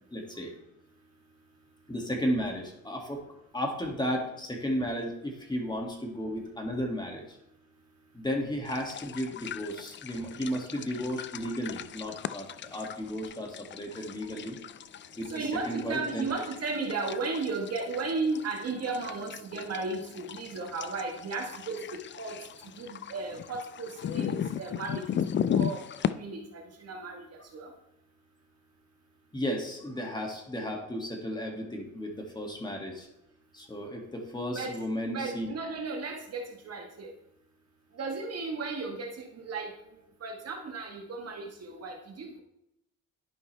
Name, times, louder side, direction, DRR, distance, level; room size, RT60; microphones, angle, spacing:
voice 1, 0.1-0.5 1.9-3.2 3.5-7.4 8.1-14.6 15.2-16.3 29.3-33.1 33.5-35.5, equal, 15° left, 1 dB, 2.0 m, -34 dB
sound 1, 8.7-26.1, left 9 dB, 40° left, 0.4 m, -37 dB
voice 2, 15.3-22.5 22.8-25.2 25.5-25.8 26.2-27.7 34.5-34.8 35.1-37.1 37.9-42.4, right 3 dB, 55° right, 2 dB, 1.5 m, -35 dB
11.0 x 5.3 x 3.3 m, 0.81 s
cardioid pair, 90°, 30 cm